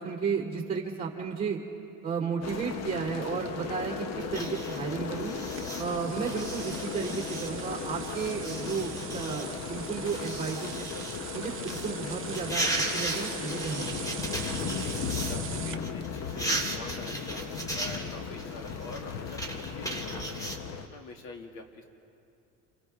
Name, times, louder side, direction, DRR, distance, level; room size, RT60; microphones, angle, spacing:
voice 1, 0.0-1.6 2.0-5.3 5.8-10.9 11.3-14.0, right 6 dB, 15° right, -2 dB, 2.7 m, -33 dB
sound 1, 2.4-20.9, left 6 dB, 45° left, 1.0 m, -36 dB
sound 2, 4.2-15.4 15.7-20.6, right 2 dB, 10° left, 2.2 m, -37 dB
sound 3, 5.5-15.7, right 10 dB, 35° right, 0.9 m, -43 dB
voice 2, 14.7-21.8, left 3 dB, 70° left, 3 dB, 2.3 m, -45 dB
28.0 x 27.0 x 3.6 m, 2.7 s
cardioid pair, 125°, 35 cm